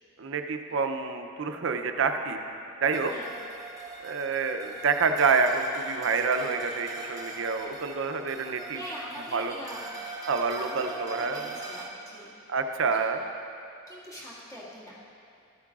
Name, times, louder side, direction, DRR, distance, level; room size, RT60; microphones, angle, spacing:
voice 1, 0.2-2.4 2.8-3.1 4.0-8.8 9.3-9.5 10.3-11.5 12.5-13.2, right 5 dB, 65° right, 6 dB, 0.5 m, -27 dB
sound 1, 2.9-11.9, right 3 dB, 15° right, 0.7 m, -41 dB
voice 2, 8.7-9.9 10.5-12.5 12.9-13.0 13.9-15.0, equal, 15° left, -8 dB, 1.9 m, -42 dB
13.5 x 8.5 x 2.4 m, 2.6 s
head